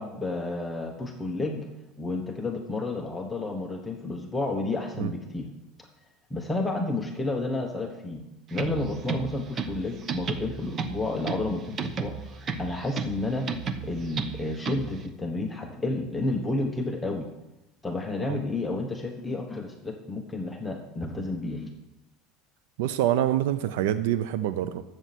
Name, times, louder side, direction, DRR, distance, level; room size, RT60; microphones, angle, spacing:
voice 1, 0.0-1.6 2.0-5.5 6.3-8.2 8.5-13.5 13.8-17.3 17.8-21.7, left 2 dB, 10° left, 2 dB, 1.2 m, -31 dB
sound 1, 8.5-15.1, right 5 dB, 30° right, 1.0 m, -34 dB
voice 2, 22.8-24.8, right 12 dB, 85° right, 12 dB, 0.6 m, -26 dB
12.5 x 8.1 x 6.1 m, 0.96 s
supercardioid pair, 140°, 0 cm